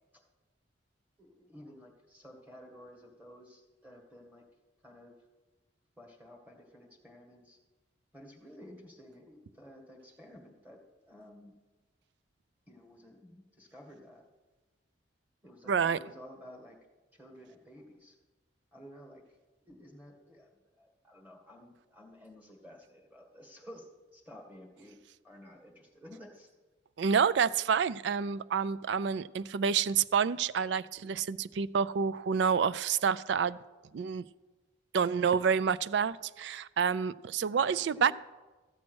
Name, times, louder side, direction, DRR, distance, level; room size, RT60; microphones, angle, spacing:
voice 1, 1.2-4.4 4.8-5.1 6.0-7.6 8.1-10.8 11.1-11.5 12.7-14.2 15.4-16.8 17.1-18.2 18.7-19.2 19.6-20.5 20.8-25.0 25.2-26.5 37.5-38.1, equal, 10° right, 2 dB, 1.8 m, -52 dB
voice 2, 15.7-16.0 27.0-33.6 33.9-34.2 34.9-38.1, right 6 dB, 65° right, 17 dB, 0.3 m, -28 dB
14.0 x 7.4 x 6.2 m, 1.2 s
head